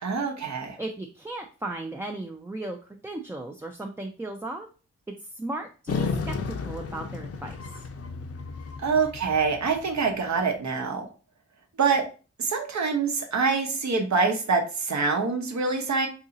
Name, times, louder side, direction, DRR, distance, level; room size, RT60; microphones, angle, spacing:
voice 1, 0.0-0.8 8.8-11.0 11.8-12.0 12.4-16.1, right 4 dB, 70° right, 3 dB, 0.9 m, -25 dB
voice 2, 0.8-4.7 5.3-7.9, right 2 dB, 10° right, 3 dB, 0.3 m, -36 dB
sound 1, 5.9-10.4, left 4 dB, 55° left, 0.6 m, -34 dB
2.8 x 2.7 x 3.8 m, 0.36 s
cardioid pair, 80°, 29 cm